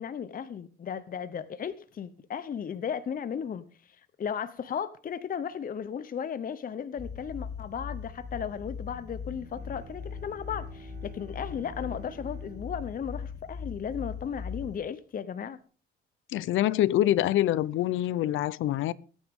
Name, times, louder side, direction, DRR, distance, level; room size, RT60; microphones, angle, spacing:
voice 1, 0.0-15.6, left 7 dB, 45° left, 0.8 m, -35 dB
sound 1, 7.0-14.8, left 6 dB, 20° left, 2.9 m, -40 dB
Bowed string instrument, 9.3-14.7, right 4 dB, 45° right, 3.6 m, -53 dB
voice 2, 16.3-18.9, left 13 dB, 80° left, 0.7 m, -25 dB
22.0 x 9.6 x 3.7 m
cardioid pair, 90°, 20 cm